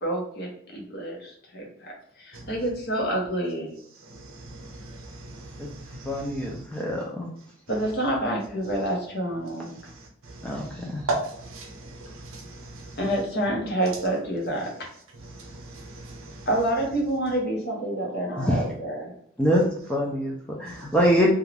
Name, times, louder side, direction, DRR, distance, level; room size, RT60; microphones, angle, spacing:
voice 1, 0.0-3.8 7.7-9.8 13.0-14.8 16.5-19.1, right 1 dB, 50° left, 0.8 m, -28 dB
voice 2, 4.1-6.5 10.3-13.0 15.4-16.5, right 2 dB, 75° right, 0.7 m, -37 dB
voice 3, 6.1-7.3 10.4-11.1 18.4-18.6 19.4-19.6 19.9-21.3, equal, 5° left, 0.3 m, -24 dB
2.4 x 2.3 x 3.2 m
head